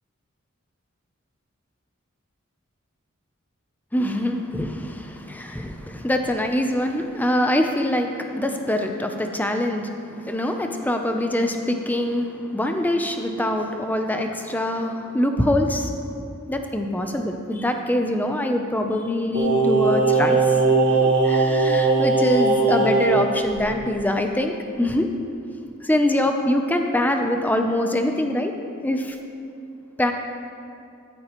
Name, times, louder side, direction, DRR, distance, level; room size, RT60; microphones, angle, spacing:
voice 1, 3.9-15.9 16.5-20.4 21.0-25.1 25.8-28.5 28.8-29.2 30.0-30.1, left 1 dB, 10° left, 4 dB, 0.5 m, -24 dB
Singing, 19.3-23.2 23.5-23.6, right 3 dB, 60° right, 2.1 m, -19 dB
13.5 x 9.7 x 3.0 m, 2.6 s
head